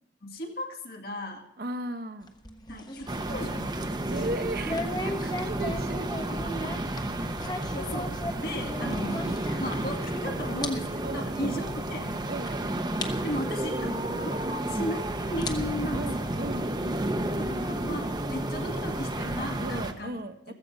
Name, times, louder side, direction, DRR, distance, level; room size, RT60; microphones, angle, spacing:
voice 1, 0.2-1.5 2.7-4.2 6.6-6.7 7.7-12.2 13.2-16.3 17.4-20.1 20.5-20.6, left 1 dB, 60° left, 3 dB, 2.0 m, -36 dB
voice 2, 1.6-2.3 4.1-6.1 7.1-7.4 11.0-11.6 12.3-12.7 15.9-17.3 19.6-20.5, right 2 dB, 55° right, 9 dB, 1.0 m, -36 dB
sound 1, 2.2-10.2 10.4-10.7 11.0-11.1 11.9-12.0 12.5-12.6 13.0-13.1 14.5-14.6 15.2-16.6, left 1 dB, 25° left, 1.2 m, -37 dB
sound 2, 3.1-19.9, right 1 dB, 25° right, 0.9 m, -31 dB
15.0 x 14.5 x 5.3 m, 0.77 s
head